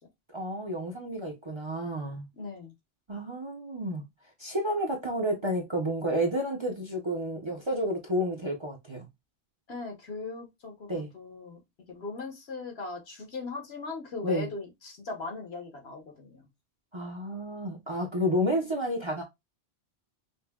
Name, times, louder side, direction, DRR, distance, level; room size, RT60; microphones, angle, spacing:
voice 1, 0.3-2.2 3.1-4.0 4.4-9.1 10.9-11.1 14.2-14.5 16.9-19.2, equal, 30° right, 0.6 m, -30 dB
voice 2, 2.3-2.7 9.7-11.6 11.9-16.4, left 3 dB, 65° left, 1.2 m, -38 dB
5.4 x 2.1 x 2.3 m
omnidirectional pair, 1.2 m